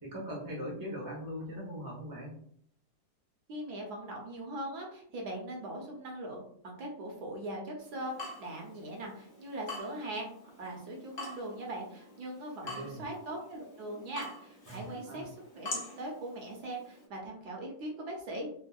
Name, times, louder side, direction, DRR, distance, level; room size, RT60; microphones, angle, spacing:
voice 1, 0.0-2.4 12.6-13.0 14.7-15.2, equal, 20° right, -4 dB, 0.5 m, -41 dB
voice 2, 3.5-10.3 10.6-18.6, right 1 dB, 75° right, 0 dB, 1.3 m, -40 dB
Water tap faucet / Drip, 7.8-17.1, left 2 dB, 50° left, 0.8 m, -46 dB
3.5 x 2.0 x 2.3 m, 0.65 s
omnidirectional pair, 1.8 m